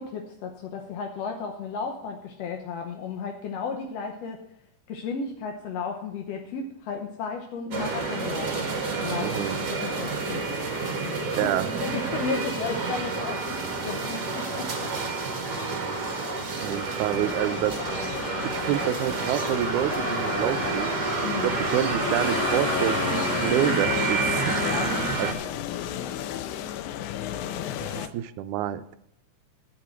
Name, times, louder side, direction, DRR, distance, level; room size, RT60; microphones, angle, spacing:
voice 1, 0.0-4.4 4.9-10.6 11.0-11.5 11.8-14.9 21.2-21.5 24.6-25.6 26.0-26.3 27.7-28.1, left 5 dB, 65° left, 2 dB, 1.8 m, -34 dB
sound 1, 7.7-25.3, right 3 dB, 40° right, 2.0 m, -29 dB
voice 2, 9.2-9.6 11.4-11.7 15.6-16.0 16.6-18.1 18.4-21.0 21.4-24.6 25.2-25.3 27.8-29.0, right 12 dB, 80° right, 12 dB, 2.0 m, -28 dB
sound 2, 17.1-28.1, left 10 dB, 80° left, 2.1 m, -33 dB
11.5 x 8.7 x 4.5 m, 0.79 s
omnidirectional pair, 3.6 m